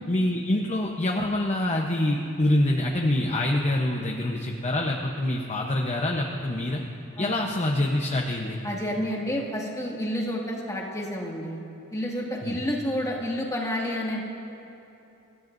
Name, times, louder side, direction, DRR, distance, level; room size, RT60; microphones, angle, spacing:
voice 1, 0.1-6.8 7.2-8.6 12.4-12.6, left 1 dB, 30° left, 0 dB, 0.9 m, -25 dB
voice 2, 8.6-11.6 11.9-14.3, equal, 15° left, -3 dB, 2.1 m, -29 dB
26.5 x 14.0 x 2.7 m, 2.8 s
head